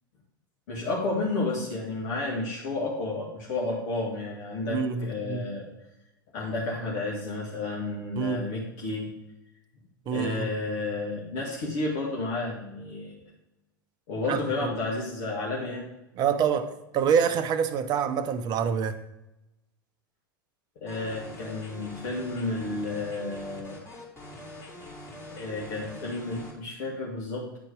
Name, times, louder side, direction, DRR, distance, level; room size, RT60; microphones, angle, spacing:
voice 1, 0.7-5.7 6.3-9.1 10.1-13.2 14.1-15.9 20.8-23.8 25.4-27.6, left 2 dB, 60° left, 1.9 m, -31 dB
voice 2, 4.7-5.4 8.2-8.5 10.1-10.5 14.3-14.7 16.2-19.0, right 7 dB, 35° right, 0.8 m, -26 dB
sound 1, 20.9-26.5, left 1 dB, 25° left, 3.0 m, -44 dB
9.5 x 4.4 x 4.9 m
hypercardioid pair, 90°, 11 cm